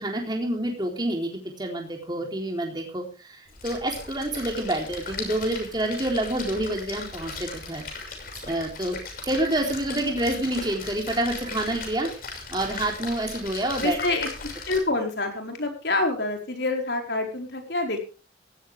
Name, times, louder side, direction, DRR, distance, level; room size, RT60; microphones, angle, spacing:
voice 1, 0.0-7.8 8.4-9.0 9.2-12.1 12.5-14.0, right 1 dB, 25° right, 1 dB, 3.8 m, -28 dB
Splash splatter, 3.5-14.8, left 3 dB, 50° left, 6.2 m, -38 dB
voice 2, 13.8-14.3 14.6-18.1, left 2 dB, 70° left, 3 dB, 4.9 m, -27 dB
17.0 x 15.0 x 3.6 m, 0.35 s
head